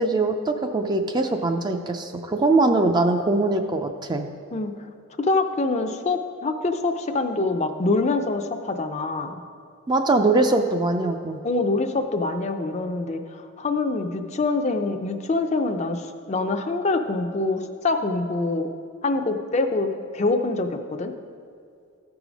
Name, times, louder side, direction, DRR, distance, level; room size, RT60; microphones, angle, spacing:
voice 1, 0.0-4.3 9.9-11.4, right 2 dB, 20° right, 5 dB, 0.4 m, -22 dB
voice 2, 5.2-9.4 11.4-18.7 19.0-21.1, left 3 dB, 30° left, 6 dB, 0.5 m, -25 dB
13.5 x 4.8 x 5.1 m, 2.4 s
head